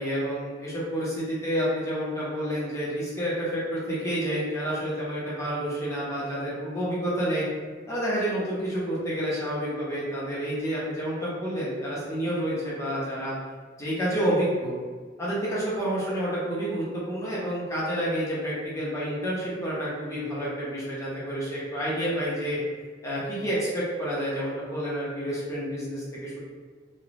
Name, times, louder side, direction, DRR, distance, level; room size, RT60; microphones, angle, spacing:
voice 1, 0.0-7.4 7.9-13.4 13.8-14.7 15.2-22.6 23.0-26.4, equal, 15° left, -8 dB, 0.7 m, -29 dB
3.1 x 2.2 x 2.5 m, 1.5 s
head